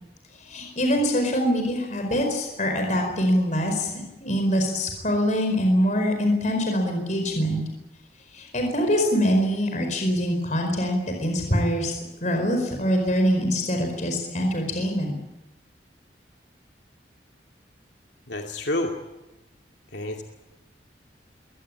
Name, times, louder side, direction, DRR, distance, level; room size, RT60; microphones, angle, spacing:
voice 1, 0.4-7.6 8.3-12.0 12.2-15.1, equal, 40° left, 3 dB, 4.8 m, -24 dB
voice 2, 18.3-18.9 19.9-20.2, left 1 dB, 70° left, 2 dB, 2.4 m, -28 dB
22.5 x 19.5 x 8.7 m, 0.98 s
head